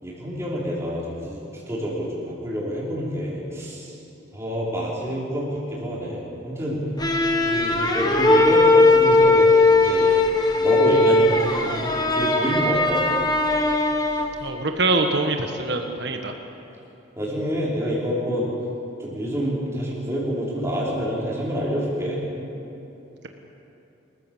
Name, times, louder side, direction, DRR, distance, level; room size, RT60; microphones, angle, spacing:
voice 1, 0.0-4.0 4.3-6.8 7.4-9.5 9.8-10.1 10.6-13.0 17.2-18.5 19.0-22.2, equal, 15° right, -7 dB, 5.2 m, -27 dB
sound 1, 7.0-14.5, left 2 dB, 20° left, 1.5 m, -19 dB
voice 2, 14.4-16.3, right 3 dB, 55° right, 4 dB, 1.5 m, -24 dB
26.5 x 14.5 x 7.5 m, 2.9 s
head